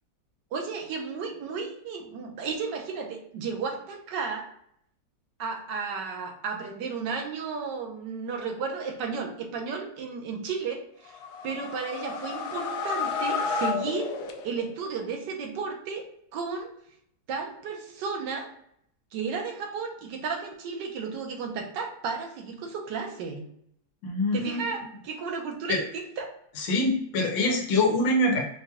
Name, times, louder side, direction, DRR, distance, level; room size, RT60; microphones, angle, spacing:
voice 1, 0.5-4.5 5.4-11.2 11.4-14.1 14.4-16.1 16.3-16.7 17.3-18.5 19.1-23.4 24.3-26.3, right 5 dB, 70° right, 2 dB, 1.4 m, -33 dB
sound 1, 11.1-14.9, left 5 dB, 70° left, 1.0 m, -31 dB
voice 2, 24.0-24.6 25.7-25.8 26.6-28.5, left 2 dB, 90° left, 0 dB, 1.6 m, -24 dB
5.0 x 2.3 x 2.8 m, 0.70 s
omnidirectional pair, 2.0 m